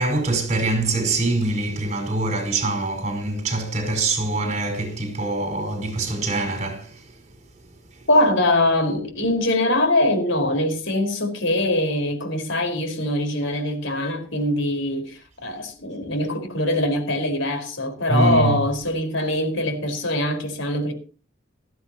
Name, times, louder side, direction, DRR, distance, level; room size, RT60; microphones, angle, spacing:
voice 1, 0.0-7.1 18.1-18.6, right 2 dB, 35° right, 4.8 m, -24 dB
voice 2, 8.1-20.9, left 1 dB, 70° left, 4.8 m, -22 dB
19.5 x 14.0 x 3.0 m
head